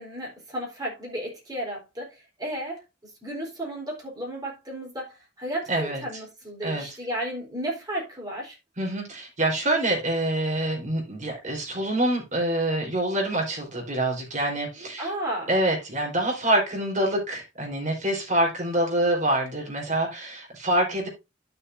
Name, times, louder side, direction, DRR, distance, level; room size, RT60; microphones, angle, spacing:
voice 1, 0.0-2.8 3.2-8.6 15.0-15.5, right 1 dB, 20° right, 4.1 m, -33 dB
voice 2, 5.7-6.0 6.6-6.9 8.8-15.1 15.5-21.1, right 1 dB, 40° right, 4.1 m, -26 dB
11.5 x 7.0 x 2.7 m
head